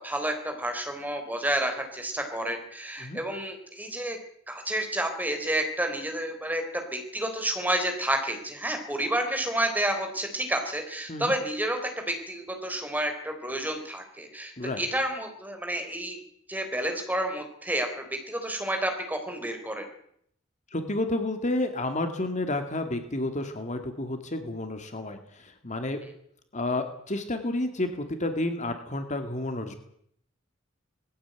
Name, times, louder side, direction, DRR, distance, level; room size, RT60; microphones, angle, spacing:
voice 1, 0.0-4.2 4.5-16.2 16.5-19.8, right 1 dB, 10° right, 4 dB, 4.0 m, -30 dB
voice 2, 20.7-26.0 26.5-29.7, left 2 dB, 40° left, 7 dB, 2.2 m, -30 dB
20.0 x 15.5 x 9.2 m, 0.69 s
head